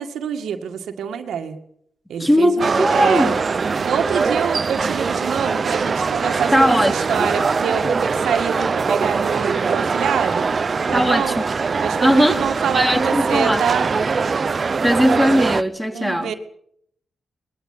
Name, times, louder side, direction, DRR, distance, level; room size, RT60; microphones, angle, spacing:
voice 1, 0.0-1.6 2.1-3.3 3.8-10.5 10.9-11.4 11.8-13.9 15.9-16.3, right 8 dB, 85° right, 7 dB, 2.1 m, -25 dB
voice 2, 2.2-3.4 6.5-7.3 10.9-11.3 12.0-12.4 12.7-13.6 14.8-16.3, equal, 5° left, 6 dB, 3.6 m, -18 dB
sound 1, 2.6-15.6, right 5 dB, 50° right, 1.0 m, -22 dB
20.5 x 14.5 x 9.8 m, 0.70 s
cardioid pair, 55°, 0 cm